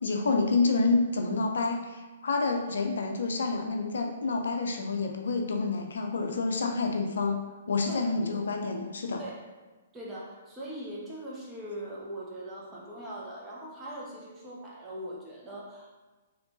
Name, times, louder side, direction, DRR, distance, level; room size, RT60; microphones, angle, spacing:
voice 1, 0.0-9.2, left 3 dB, 70° left, 4 dB, 0.4 m, -28 dB
voice 2, 9.9-15.9, right 1 dB, 15° right, -5 dB, 0.9 m, -41 dB
3.5 x 3.1 x 2.5 m, 1.2 s
figure-of-eight pair, 125°, 0 cm